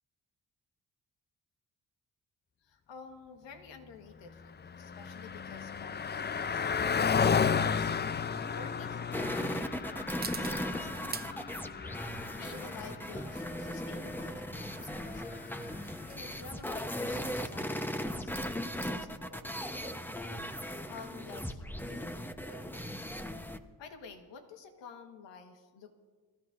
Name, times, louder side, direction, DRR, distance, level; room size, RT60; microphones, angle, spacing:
voice 1, 2.6-11.5 12.4-15.4 16.1-18.4 18.7-19.9 20.8-22.8 23.8-25.9, left 5 dB, 85° left, 5 dB, 1.5 m, -51 dB
Car passing by, 4.2-15.9, left 6 dB, 25° left, 0.4 m, -34 dB
sound 1, 4.6-21.3, right 5 dB, 20° right, 0.7 m, -50 dB
sound 2, 9.1-23.6, equal, 5° left, 0.9 m, -38 dB
25.0 x 13.5 x 2.6 m, 1.5 s
supercardioid pair, 50°, 43 cm